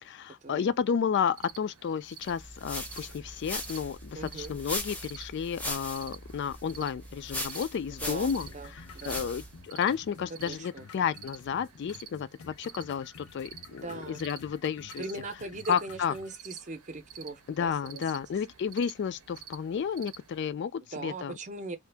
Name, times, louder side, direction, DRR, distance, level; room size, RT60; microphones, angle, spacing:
voice 1, 0.0-15.0 15.7-16.1 17.5-21.4, left 7 dB, 55° left, 0.3 m, -32 dB
sound 1, 1.3-20.5, right 9 dB, 90° right, 0.7 m, -51 dB
sound 2, 2.2-9.6, left 1 dB, 5° left, 0.6 m, -39 dB
voice 2, 4.1-4.5 8.0-9.3 10.4-10.8 13.7-14.2 15.0-18.0 20.9-21.8, right 3 dB, 35° right, 0.6 m, -40 dB
sound 3, 8.4-16.4, left 4 dB, 90° left, 0.6 m, -51 dB
2.8 x 2.5 x 3.3 m
head